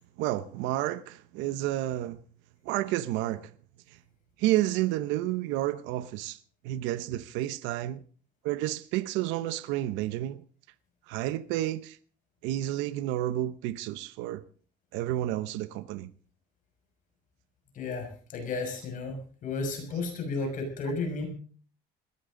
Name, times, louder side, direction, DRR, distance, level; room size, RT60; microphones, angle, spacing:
voice 1, 0.2-2.2 2.6-3.5 4.4-6.4 6.6-8.0 8.4-10.4 11.1-12.0 12.4-14.4 14.9-16.1, right 14 dB, 85° right, 0.9 m, -30 dB
voice 2, 17.7-19.2 19.4-21.3, left 3 dB, 45° left, 6.0 m, -33 dB
21.0 x 15.5 x 3.8 m
cardioid pair, 150°, 19 cm